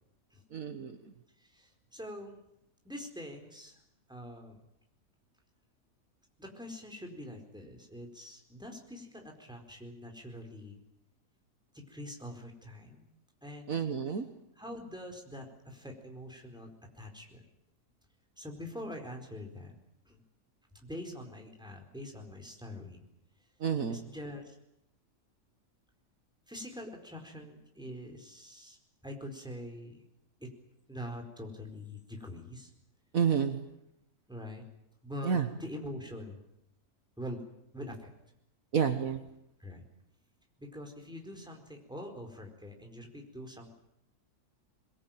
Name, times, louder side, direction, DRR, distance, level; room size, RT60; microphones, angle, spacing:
voice 1, 0.5-1.0 13.7-14.3 23.6-24.0 33.1-33.6 35.2-35.4 38.7-39.2, right 7 dB, 60° right, 8 dB, 1.7 m, -29 dB
voice 2, 1.4-2.4 2.8-3.8 4.1-4.6 6.4-10.8 11.7-13.1 13.4-13.7 14.6-16.7 16.9-17.4 18.4-19.7 20.1-20.2 20.7-23.0 23.9-24.5 26.5-28.8 29.0-30.0 30.4-30.5 30.9-32.7 34.3-34.6 35.0-36.4 37.2-37.4 37.7-38.1 39.6-39.8 40.6-43.7, left 1 dB, ahead, 2 dB, 4.4 m, -44 dB
23.0 x 21.5 x 9.1 m, 0.82 s
omnidirectional pair, 1.7 m